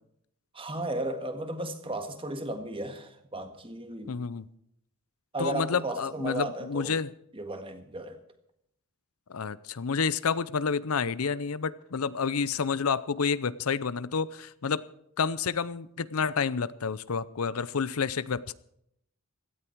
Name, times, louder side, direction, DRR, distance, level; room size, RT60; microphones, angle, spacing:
voice 1, 0.5-4.1 5.3-7.0 7.3-8.2, right 1 dB, 25° right, 1.7 m, -35 dB
voice 2, 4.1-4.5 5.4-7.1 9.3-14.9 15.2-18.5, left 5 dB, 90° left, 0.6 m, -29 dB
17.0 x 13.5 x 4.6 m
head